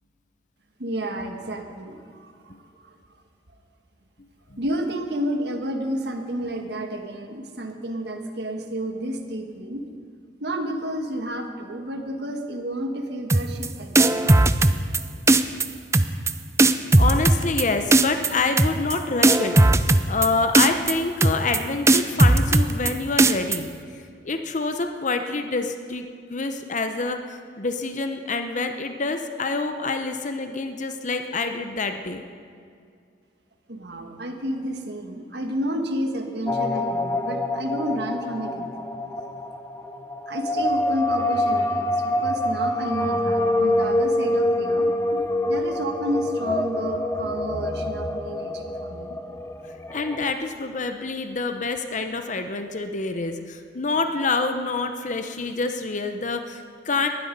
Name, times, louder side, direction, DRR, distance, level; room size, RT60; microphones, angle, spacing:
voice 1, 0.8-2.5 2.8-2.9 4.6-9.9 10.4-14.3 33.7-38.9 40.3-49.2, right 1 dB, 65° right, 4 dB, 1.6 m, -31 dB
sound 1, 13.3-13.7 14.0-15.0 15.3-15.7 15.9-16.3 16.6-17.6 17.9-18.3 18.6-18.9 19.2-20.3 20.5-20.9 21.2-21.6 21.9-22.9 23.2-23.6, right 2 dB, 15° right, 0.5 m, -16 dB
voice 2, 16.6-23.7 24.2-32.2 49.9-57.1, left 3 dB, 45° left, 7 dB, 0.8 m, -27 dB
sound 2, 36.5-50.3, left 1 dB, 15° left, 0.7 m, -26 dB
20.0 x 12.5 x 5.3 m, 2.3 s
head